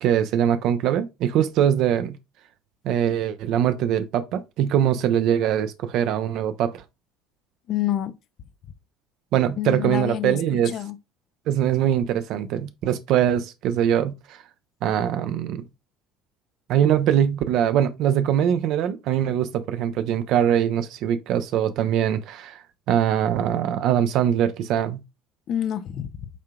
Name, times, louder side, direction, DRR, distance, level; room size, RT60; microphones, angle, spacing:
voice 1, 0.0-2.2 2.8-6.8 9.3-10.7 11.5-14.4 14.8-15.7 16.7-22.6 22.9-25.0, right 10 dB, 50° right, 0.5 m, -22 dB
voice 2, 7.7-8.1 9.6-11.0 25.5-26.3, left 11 dB, 45° left, 0.5 m, -28 dB
8.2 x 2.8 x 2.2 m
figure-of-eight pair, 60°, 0 cm